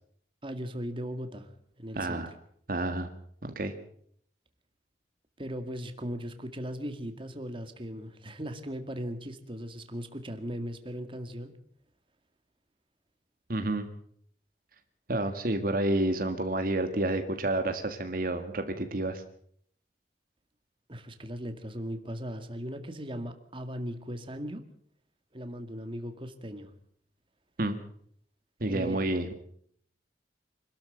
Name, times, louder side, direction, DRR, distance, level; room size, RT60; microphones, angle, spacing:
voice 1, 0.4-1.5 1.8-2.2 5.4-11.5 20.9-24.6 25.3-26.7 28.6-29.3, equal, 30° right, 7 dB, 2.1 m, -38 dB
voice 2, 1.9-2.3 2.7-3.1 3.4-3.7 13.5-13.9 15.1-19.2 27.6-27.8 28.6-29.3, right 1 dB, 55° right, 7 dB, 1.8 m, -29 dB
26.0 x 13.0 x 8.0 m, 0.65 s
head